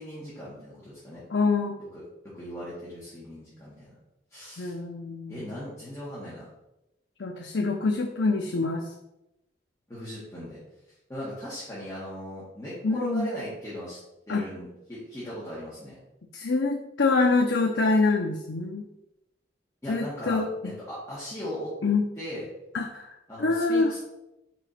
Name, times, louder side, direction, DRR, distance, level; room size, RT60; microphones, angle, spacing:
voice 1, 0.0-1.2 1.9-3.9 4.3-4.7 5.3-6.4 9.9-10.6 11.1-14.0 14.3-16.0 19.8-21.7 22.2-22.5 23.3-24.0, equal, 15° left, -10 dB, 2.1 m, -38 dB
voice 2, 1.3-1.8 4.6-5.5 7.2-8.8 12.8-13.3 14.3-14.4 16.3-18.8 19.9-20.7 21.8-22.1 22.7-23.1 23.4-24.0, left 3 dB, 90° left, 2 dB, 0.6 m, -25 dB
4.9 x 4.7 x 5.7 m, 0.91 s
head